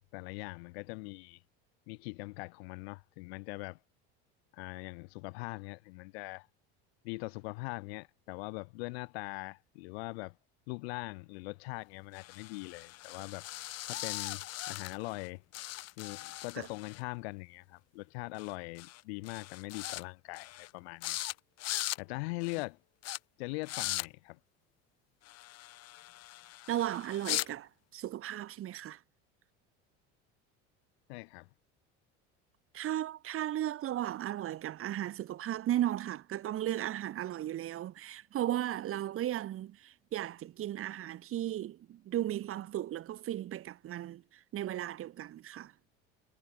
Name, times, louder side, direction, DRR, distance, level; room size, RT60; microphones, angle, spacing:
voice 1, 0.0-1.4 1.9-3.8 4.5-6.5 7.0-10.4 10.7-13.4 13.9-15.4 16.0-21.2 22.0-22.8 23.4-24.4 31.1-31.5, left 27 dB, 85° left, 1.8 m, -41 dB
sound 1, 12.1-15.3 15.5-17.0 18.4-18.5 18.8-19.0 19.3-20.0 20.3-20.7 21.0-21.3 21.6-22.0 22.4-22.6 23.0-23.2 23.6-24.1 25.2-27.5, left 15 dB, 55° left, 1.8 m, -39 dB
voice 2, 26.7-29.0 32.7-45.7, right 12 dB, 45° right, 1.5 m, -36 dB
supercardioid pair, 110°, 31 cm